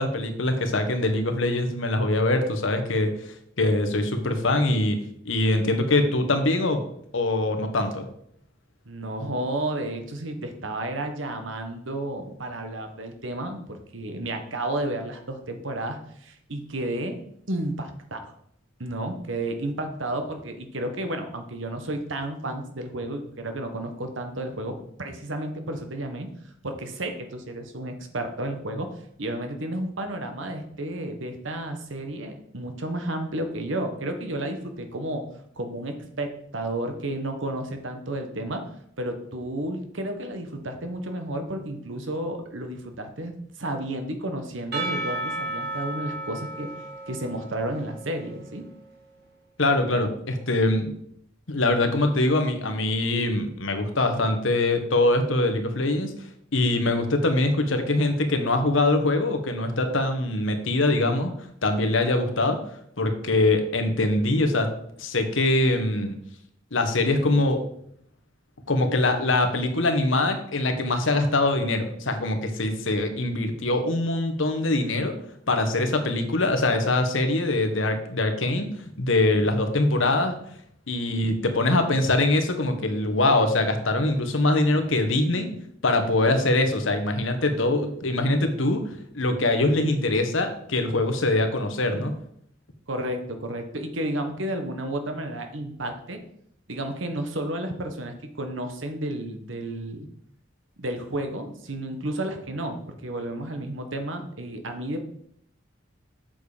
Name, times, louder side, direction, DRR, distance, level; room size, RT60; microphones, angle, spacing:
voice 1, 0.0-3.1 3.6-5.0 5.2-6.8 7.1-8.1 49.6-51.0 51.5-56.1 56.5-61.3 61.6-62.6 63.0-64.7 65.0-66.2 66.7-67.6 68.7-75.1 75.5-78.7 79.0-80.4 80.9-85.5 85.8-92.1, left 2 dB, 75° left, 6 dB, 1.3 m, -23 dB
voice 2, 8.8-17.2 17.5-18.3 18.8-26.3 26.6-35.2 35.6-38.6 39.0-43.3 43.6-46.7 47.1-48.6 92.9-96.2 96.7-100.1 100.8-105.0, right 1 dB, 70° right, 5 dB, 1.4 m, -32 dB
Percussion / Church bell, 44.7-48.7, right 2 dB, 55° right, 2.2 m, -34 dB
7.8 x 6.7 x 5.1 m, 0.68 s
head